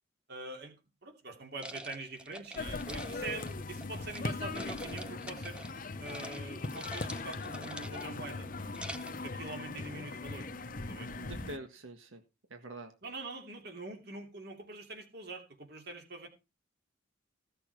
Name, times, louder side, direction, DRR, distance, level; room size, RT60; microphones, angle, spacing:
voice 1, 0.3-0.7 1.0-5.6 6.0-8.5 9.2-10.5 10.8-11.1 13.0-16.3, right 3 dB, 55° right, 4 dB, 2.8 m, -44 dB
sound 1, 1.6-4.2 4.5-5.8 6.0-6.4 6.6-8.2 8.6-9.2, right 1 dB, 5° right, 0.9 m, -46 dB
sound 2, 2.6-11.6, left 3 dB, 45° left, 0.9 m, -39 dB
voice 2, 11.2-12.2 12.5-12.9, right 2 dB, 85° right, 6 dB, 1.7 m, -45 dB
15.5 x 6.9 x 4.7 m, 0.28 s
head